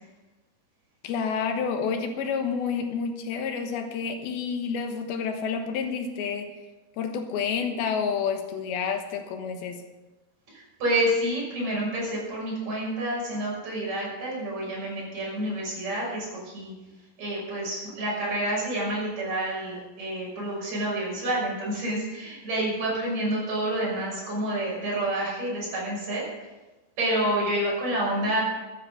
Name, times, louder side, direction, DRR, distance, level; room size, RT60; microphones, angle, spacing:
voice 1, 1.0-6.5 7.0-9.8, left 6 dB, 90° left, 6 dB, 3.2 m, -29 dB
voice 2, 10.5-16.7 17.2-26.2 27.0-28.4, right 1 dB, 50° right, -5 dB, 7.3 m, -28 dB
13.5 x 10.0 x 6.8 m, 1.2 s
omnidirectional pair, 4.2 m